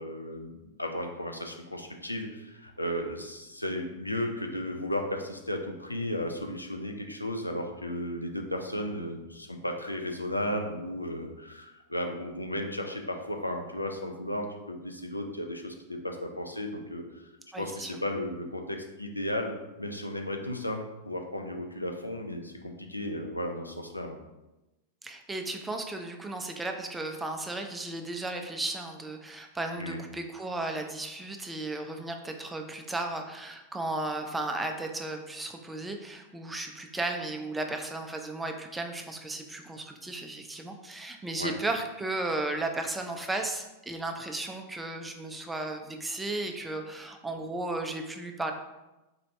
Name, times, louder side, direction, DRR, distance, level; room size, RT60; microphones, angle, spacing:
voice 1, 0.0-24.2 29.8-30.0 41.4-41.5, left 1 dB, 90° left, 3 dB, 0.4 m, -34 dB
voice 2, 17.5-17.9 25.0-48.5, right 2 dB, 10° right, 4 dB, 0.4 m, -35 dB
4.0 x 2.6 x 3.2 m, 1.0 s
figure-of-eight pair, 95°, 0 cm